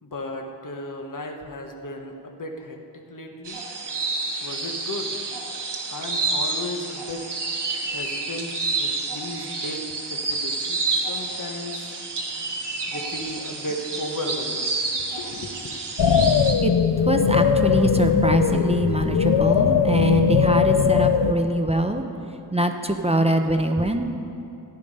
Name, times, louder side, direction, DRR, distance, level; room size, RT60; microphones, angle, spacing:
voice 1, 0.0-3.6 4.4-5.2 5.9-7.3 7.9-12.0 12.9-14.8 15.1-15.7, left 1 dB, 50° left, 3 dB, 1.3 m, -35 dB
sound 1, 3.4-16.5, right 3 dB, 80° right, 1.4 m, -29 dB
sound 2, 16.0-21.3, left 7 dB, 85° left, 0.6 m, -19 dB
voice 2, 17.0-22.1 22.5-24.0, right 1 dB, 15° right, 5 dB, 0.7 m, -23 dB
14.5 x 10.5 x 5.4 m, 2.8 s
wide cardioid pair, 100°, 40 cm